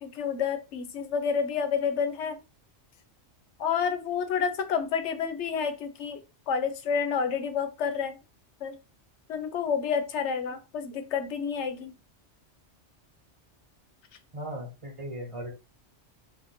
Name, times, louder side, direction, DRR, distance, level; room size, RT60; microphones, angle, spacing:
voice 1, 0.0-2.4 3.6-6.2 6.5-8.1 8.6-8.7 9.3-11.9, left 6 dB, 80° left, 9 dB, 0.9 m, -29 dB
voice 2, 14.3-15.5, equal, 30° right, -1 dB, 1.0 m, -37 dB
2.6 x 2.4 x 4.1 m, 0.29 s
omnidirectional pair, 1.2 m